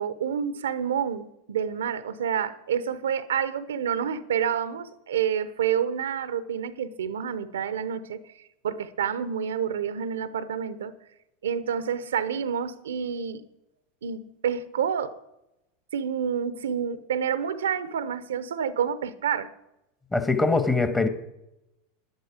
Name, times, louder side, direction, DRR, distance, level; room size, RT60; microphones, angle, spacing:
voice 1, 0.0-8.2 8.6-10.9 11.4-13.4 14.0-15.1 15.9-19.5, right 8 dB, 75° right, 15 dB, 0.7 m, -28 dB
voice 2, 20.1-21.1, left 3 dB, 15° left, 9 dB, 1.5 m, -22 dB
11.5 x 11.0 x 5.0 m, 0.87 s
hypercardioid pair, 85°, 0 cm